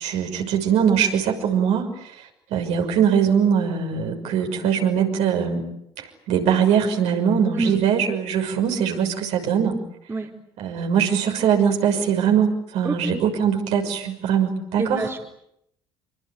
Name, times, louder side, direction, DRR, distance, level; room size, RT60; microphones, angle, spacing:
voice 1, 0.0-5.6 6.0-9.8 10.6-15.1, right 7 dB, 60° right, 3 dB, 6.1 m, -22 dB
voice 2, 12.8-13.2 14.8-15.2, right 3 dB, 20° right, 2 dB, 4.4 m, -27 dB
27.5 x 24.5 x 8.6 m, 0.77 s
figure-of-eight pair, 60°, 13 cm